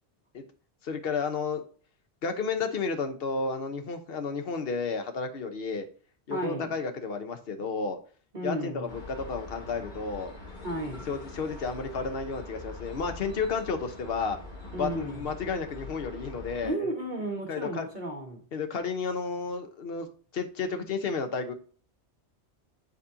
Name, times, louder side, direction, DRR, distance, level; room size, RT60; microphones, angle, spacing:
voice 1, 0.8-1.6 2.2-5.9 6.3-8.0 8.4-10.3 10.9-14.4 14.8-16.9 17.5-17.9 18.5-20.1 20.3-21.5, left 4 dB, 60° left, 1.1 m, -32 dB
voice 2, 6.3-6.7 8.3-8.8 10.6-11.0 14.7-15.2 16.6-18.4, right 1 dB, 45° right, 1.6 m, -33 dB
sound 1, 8.9-16.7, left 2 dB, 45° left, 1.9 m, -43 dB
9.4 x 4.1 x 2.7 m
omnidirectional pair, 1.2 m